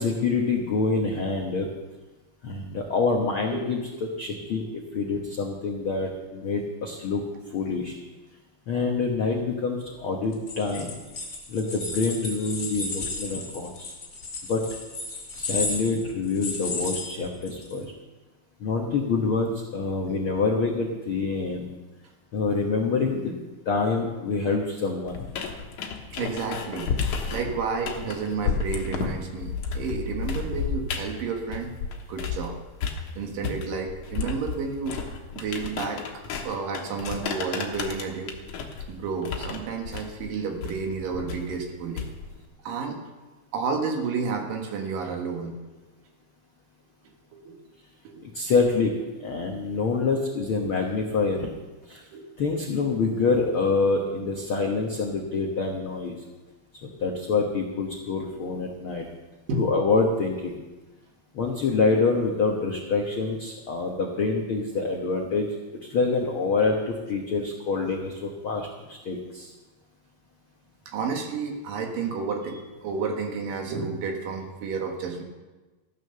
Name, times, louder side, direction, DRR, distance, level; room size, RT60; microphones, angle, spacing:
voice 1, 0.0-1.7 2.4-3.8 4.2-4.6 4.9-7.2 7.5-8.0 8.7-10.9 11.5-13.9 14.5-14.6 15.3-17.9 18.6-21.7 22.3-23.3 23.6-25.2 48.3-48.9 49.2-51.5 51.9-52.0 52.4-56.1 57.0-59.1 59.6-60.6 61.3-65.5 65.9-69.5, left 4 dB, 90° left, 1 dB, 1.1 m, -26 dB
sound 1, 10.3-17.8, left 3 dB, 35° left, 3.3 m, -34 dB
sound 2, 25.1-32.5 32.8-42.4, left 6 dB, 65° left, 2.4 m, -32 dB
voice 2, 26.1-31.7 32.1-32.6 33.1-35.0 35.3-36.1 36.4-38.4 38.9-42.1 42.6-43.0 43.5-45.6 47.3-47.6 48.0-48.3 51.9-52.3 59.5-59.7 70.9-75.2, right 4 dB, 70° right, 3 dB, 3.1 m, -31 dB
14.5 x 9.6 x 6.6 m, 1.2 s
omnidirectional pair, 4.3 m